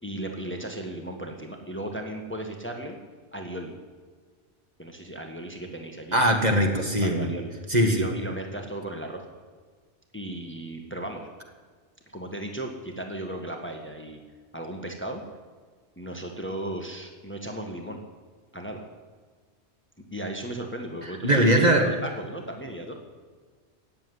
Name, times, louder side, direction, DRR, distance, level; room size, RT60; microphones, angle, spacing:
voice 1, 0.0-3.0 3.3-3.7 4.8-6.3 7.0-7.5 7.8-9.2 10.1-11.3 12.1-14.2 14.5-15.2 16.0-18.0 18.5-18.9 20.1-22.9, right 1 dB, 10° left, 3 dB, 1.6 m, -35 dB
voice 2, 6.1-7.3 7.7-8.1 21.2-21.8, right 1 dB, 40° right, 2 dB, 2.0 m, -21 dB
17.5 x 7.7 x 9.7 m, 1.5 s
omnidirectional pair, 1.2 m